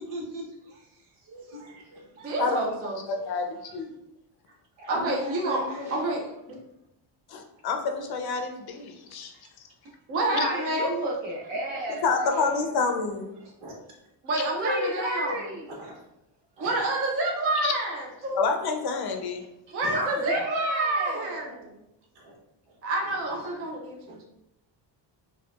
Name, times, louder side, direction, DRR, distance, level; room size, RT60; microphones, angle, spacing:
voice 1, 0.0-2.3 3.1-3.5 4.9-6.3 13.4-13.8 15.7-16.0 16.6-16.8 19.8-20.0 22.1-22.4 22.7-23.7 24.1-24.2, equal, 85° right, -1 dB, 1.1 m, -41 dB
voice 2, 2.2-3.0 4.9-6.2 10.1-11.0 14.2-15.4 16.6-18.4 19.7-21.8 22.8-24.2, right 2 dB, 30° right, 0 dB, 0.4 m, -28 dB
voice 3, 3.1-3.4 3.7-3.9 7.3-9.3 10.3-10.5 12.0-13.3 17.6-17.7 18.3-19.4, left 4 dB, 55° left, 4 dB, 0.5 m, -28 dB
voice 4, 10.4-12.7 14.5-15.7 19.9-21.7, right 1 dB, 60° right, -2 dB, 1.0 m, -32 dB
4.2 x 2.3 x 2.3 m, 0.86 s
cardioid pair, 155°, 48 cm